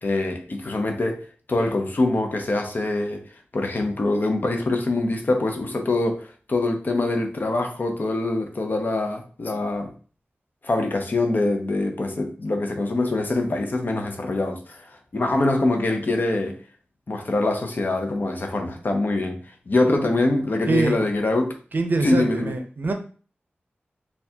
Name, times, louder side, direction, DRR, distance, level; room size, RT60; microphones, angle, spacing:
voice 1, 0.0-3.2 3.5-9.9 10.6-16.6 17.1-21.6 22.0-22.5, left 2 dB, 50° left, 0.6 m, -24 dB
voice 2, 21.7-22.9, right 3 dB, 55° right, 0.5 m, -23 dB
4.5 x 2.3 x 2.7 m
wide cardioid pair, 100°, 4 cm